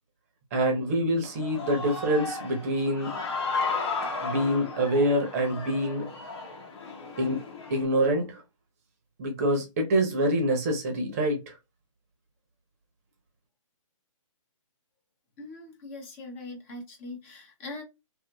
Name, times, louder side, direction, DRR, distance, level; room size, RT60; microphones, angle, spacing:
voice 1, 0.5-3.1 4.2-6.1 7.2-7.4 7.7-8.4 9.2-11.6, right 1 dB, 30° right, 0.7 m, -26 dB
Human voice / Cheering, 1.2-7.9, left 4 dB, 50° left, 1.1 m, -34 dB
voice 2, 15.4-17.8, left 2 dB, 25° left, 0.8 m, -41 dB
2.8 x 2.5 x 2.2 m
figure-of-eight pair, 145°, 17 cm